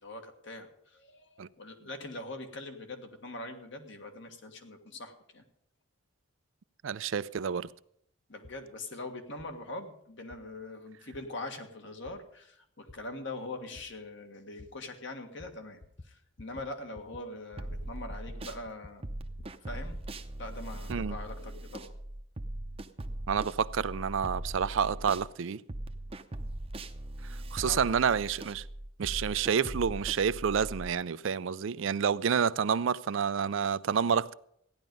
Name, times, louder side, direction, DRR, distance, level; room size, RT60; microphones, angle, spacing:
voice 1, 0.0-5.4 8.3-19.2 19.6-20.0 20.4-21.9 27.6-27.9 29.2-29.3, left 2 dB, 60° left, 1.7 m, -42 dB
voice 2, 6.8-7.7 20.9-21.2 23.3-25.6 27.5-28.6 29.0-34.3, right 7 dB, 70° right, 0.4 m, -29 dB
sound 1, 8.4-8.6 9.4-9.5 10.3-10.4 11.1-11.2 12.1-12.2 12.9-13.0 13.8-13.9 14.6-14.7 15.4-15.5 15.8-16.1 16.4-16.7 16.9-17.2 17.5-18.4 18.7-20.1, left 2 dB, 30° left, 0.7 m, -51 dB
sound 2, 17.6-18.6 19.0-25.3 25.7-30.9, right 1 dB, 30° right, 0.7 m, -40 dB
15.0 x 10.5 x 5.3 m
head